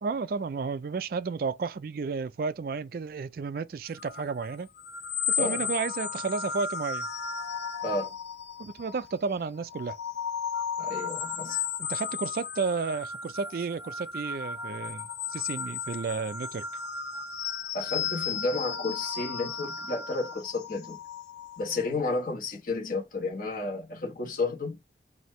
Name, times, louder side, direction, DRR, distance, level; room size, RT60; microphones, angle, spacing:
voice 1, 0.0-4.7 5.3-7.1 8.6-10.0 11.5-11.6 11.8-16.6, right 5 dB, 55° right, 0.3 m, -32 dB
sound 1, 3.9-9.2 9.6-21.9, left 6 dB, 75° left, 0.9 m, -35 dB
voice 2, 7.8-8.1 10.8-11.6 17.7-21.0 21.6-24.8, left 3 dB, 50° left, 1.3 m, -32 dB
4.3 x 2.7 x 3.1 m
head